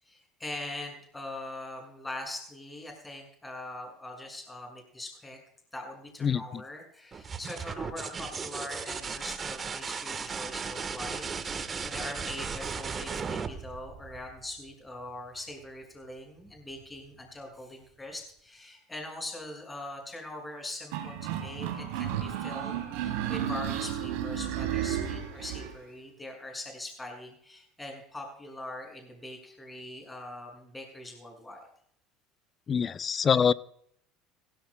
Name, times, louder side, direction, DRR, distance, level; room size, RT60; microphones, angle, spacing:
voice 1, 0.0-5.4 5.7-31.7, left 1 dB, 15° left, 2 dB, 6.2 m, -42 dB
sound 1, 7.1-14.7 16.5-17.0, right 5 dB, 30° right, 1.3 m, -36 dB
sound 2, 20.9-25.7, right 10 dB, 75° right, 3.0 m, -33 dB
voice 2, 32.7-33.5, left 7 dB, 35° left, 16 dB, 0.6 m, -24 dB
18.0 x 16.5 x 2.3 m, 0.68 s
supercardioid pair, 90°, 0 cm